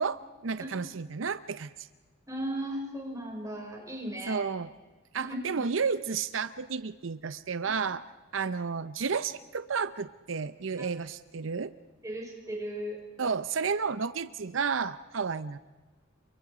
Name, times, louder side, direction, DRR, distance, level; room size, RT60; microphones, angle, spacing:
voice 1, 0.0-1.9 4.3-4.7 5.1-8.0 8.3-11.7 13.2-15.6, right 5 dB, 90° right, 14 dB, 0.7 m, -32 dB
voice 2, 2.3-4.4 5.2-5.6 7.6-7.7 10.8-10.9 12.0-13.0, right 1 dB, 15° right, 0 dB, 5.0 m, -36 dB
28.5 x 24.0 x 5.0 m, 1.3 s
head